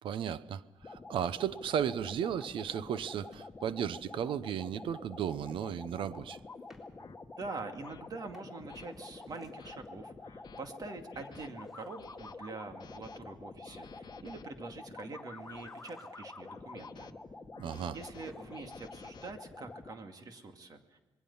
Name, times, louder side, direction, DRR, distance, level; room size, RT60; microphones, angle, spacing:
voice 1, 0.0-6.4 17.6-18.0, right 9 dB, 85° right, 0.8 m, -35 dB
sound 1, 0.8-20.0, left 3 dB, 20° left, 1.7 m, -48 dB
Drawer open or close, 2.4-3.8 5.5-6.9 8.1-9.9 11.1-12.8 15.2-16.5 17.9-19.0 19.3-19.4, equal, 5° right, 3.6 m, -64 dB
sound 2, 5.3-5.4 6.1-6.3 7.0-7.1 7.8-8.0 8.7-8.9 9.4-9.7 10.2-10.6 11.1-11.5 12.0-12.3 12.8-13.2 13.6-14.4 15.1-15.8 16.4-17.1 17.5-19.3, left 7 dB, 60° left, 1.0 m, -55 dB
voice 2, 7.4-17.1 17.9-21.0, right 3 dB, 50° right, 2.4 m, -45 dB
26.5 x 21.5 x 5.6 m
cardioid pair, 120°, 9 cm